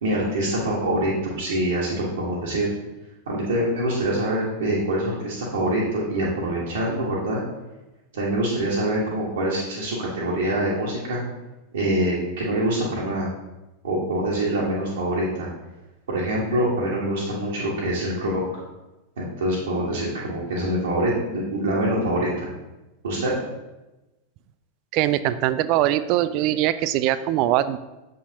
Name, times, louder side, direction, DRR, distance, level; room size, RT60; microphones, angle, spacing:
voice 1, 0.0-2.7 3.3-7.4 8.1-11.2 11.7-13.3 13.8-15.5 16.1-18.4 19.2-22.5 23.0-23.3, right 1 dB, 65° right, -6 dB, 1.4 m, -25 dB
voice 2, 24.9-27.8, right 13 dB, 40° right, 14 dB, 0.3 m, -22 dB
7.1 x 5.5 x 2.8 m, 1.0 s
figure-of-eight pair, 90°, 0 cm